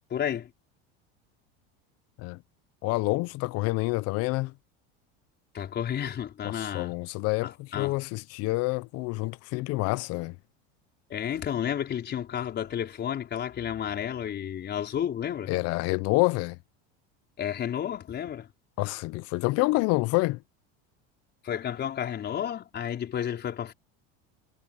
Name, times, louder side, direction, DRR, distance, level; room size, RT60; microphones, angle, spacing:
voice 1, 0.1-0.5 5.5-7.0 7.4-8.0 11.1-15.5 17.4-18.5 21.4-23.7, left 9 dB, 35° left, 5.0 m, -31 dB
voice 2, 2.8-4.5 6.4-10.3 15.5-16.6 18.8-20.4, left 22 dB, 55° left, 0.6 m, -27 dB
supercardioid pair, 125°, 30 cm